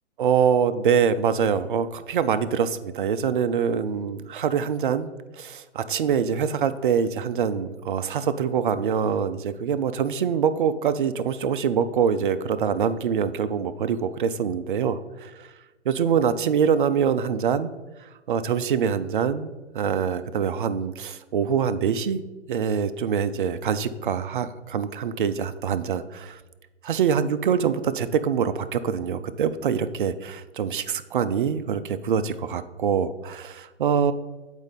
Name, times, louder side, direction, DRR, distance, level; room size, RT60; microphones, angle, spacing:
voice 1, 0.2-5.1 5.4-15.5 15.9-17.7 18.3-19.5 19.7-22.2 22.5-26.4 26.8-34.1, right 7 dB, 45° right, 11 dB, 0.4 m, -24 dB
7.0 x 4.4 x 4.0 m, 1.2 s
figure-of-eight pair, 135°, 36 cm